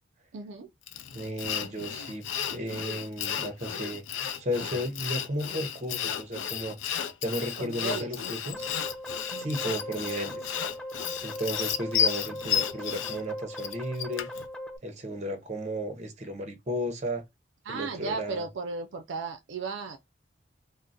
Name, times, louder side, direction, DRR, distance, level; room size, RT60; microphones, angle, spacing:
voice 1, 0.3-0.7 7.6-8.1 9.3-9.5 17.7-20.0, right 3 dB, 70° right, 0.4 m, -35 dB
Sawing, 0.9-14.5, left 9 dB, 85° left, 0.4 m, -33 dB
voice 2, 1.1-2.2 2.5-4.0 4.4-6.8 7.2-8.7 9.4-10.4 11.2-14.3 14.8-17.2 17.7-18.5, equal, 35° right, 0.7 m, -34 dB
sound 1, 8.5-14.8, left 1 dB, 5° left, 0.3 m, -40 dB
3.6 x 2.0 x 2.5 m
head